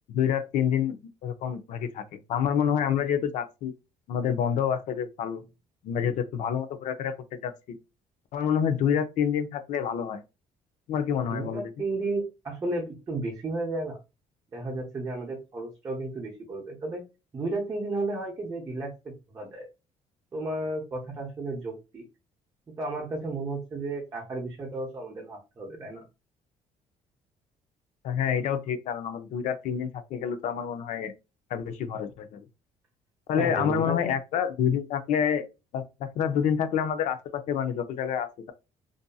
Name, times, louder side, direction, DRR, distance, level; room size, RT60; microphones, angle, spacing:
voice 1, 0.1-3.7 4.1-5.4 5.8-7.1 7.4-7.8 8.3-10.2 10.9-11.7 28.0-31.1 31.5-32.4 33.3-35.5 35.7-38.5, left 8 dB, 65° left, 0.5 m, -28 dB
voice 2, 11.2-14.0 14.5-17.0 17.3-19.7 20.3-22.0 22.8-26.0 33.4-34.0, right 2 dB, 25° right, 0.7 m, -33 dB
2.6 x 2.5 x 2.2 m
cardioid pair, 130°, 13 cm